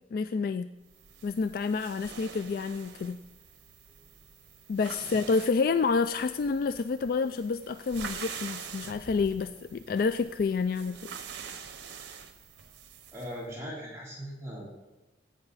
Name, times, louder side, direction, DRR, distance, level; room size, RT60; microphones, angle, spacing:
voice 1, 0.1-0.7 1.2-3.2 4.7-11.2, left 4 dB, 55° left, 11 dB, 0.3 m, -29 dB
sound 1, 0.9-13.4, right 6 dB, 90° right, 1.0 m, -45 dB
voice 2, 13.1-14.7, equal, 15° right, -6 dB, 3.4 m, -39 dB
16.5 x 8.9 x 4.1 m, 1.1 s
head